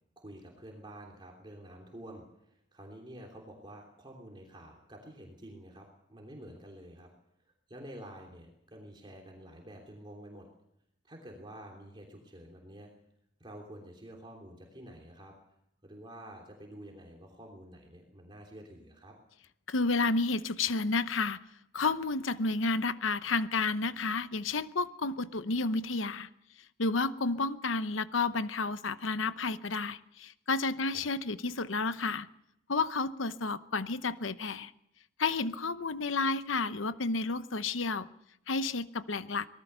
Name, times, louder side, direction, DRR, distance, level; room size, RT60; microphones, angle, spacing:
voice 1, 0.2-7.1 7.4-10.5 11.0-12.9 13.4-15.3 15.8-19.1 30.9-31.1, right 1 dB, 25° right, 0 dB, 3.2 m, -49 dB
voice 2, 19.7-21.4 21.7-26.3 26.8-32.3 32.7-34.7 35.2-38.1 38.5-39.5, left 3 dB, 90° left, 13 dB, 0.9 m, -31 dB
25.0 x 18.5 x 6.9 m, 0.81 s
head